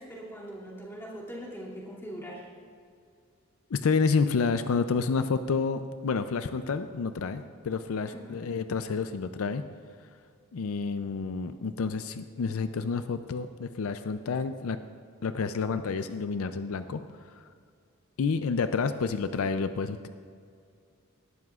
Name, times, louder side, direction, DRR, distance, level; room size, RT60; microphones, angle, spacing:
voice 1, 0.0-2.5 8.0-8.5, equal, 10° left, -6 dB, 2.4 m, -41 dB
voice 2, 3.7-9.6 10.5-14.8 15.2-17.0 18.2-20.1, left 5 dB, 75° left, 10 dB, 0.4 m, -29 dB
18.5 x 12.5 x 2.4 m, 2.3 s
head